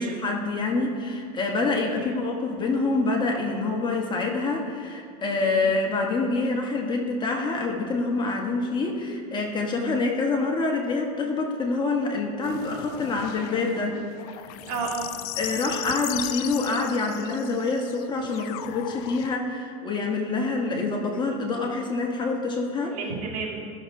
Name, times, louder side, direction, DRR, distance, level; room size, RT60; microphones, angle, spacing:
voice 1, 0.0-14.0 15.4-23.0, left 3 dB, 20° left, 0 dB, 1.2 m, -26 dB
sound 1, 12.4-19.4, left 14 dB, 70° left, 0.4 m, -37 dB
voice 2, 14.7-15.1 22.9-23.6, right 4 dB, 75° right, -2 dB, 1.9 m, -32 dB
14.0 x 6.5 x 2.7 m, 2.4 s
supercardioid pair, 130°, 20 cm